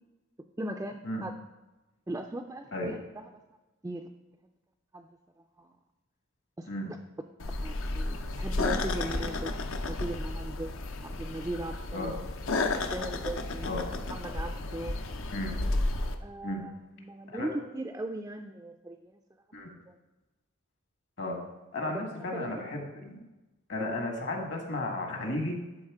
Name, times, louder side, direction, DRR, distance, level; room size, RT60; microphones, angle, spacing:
voice 1, 0.6-1.3 2.1-3.3 3.8-4.1 4.9-5.1 5.6-5.7 6.6-6.7 7.6-9.5 9.9-10.7 11.0-12.2 12.9-13.7 14.1-15.0 16.2-19.2 19.9-20.0 21.9-22.5, right 1 dB, 15° right, 3 dB, 0.3 m, -38 dB
sound 1, 7.4-16.2, left 2 dB, 75° left, 0.7 m, -32 dB
voice 2, 21.7-23.2 23.7-25.6, left 1 dB, 55° left, 3 dB, 1.6 m, -34 dB
11.5 x 4.1 x 4.8 m, 1.1 s
head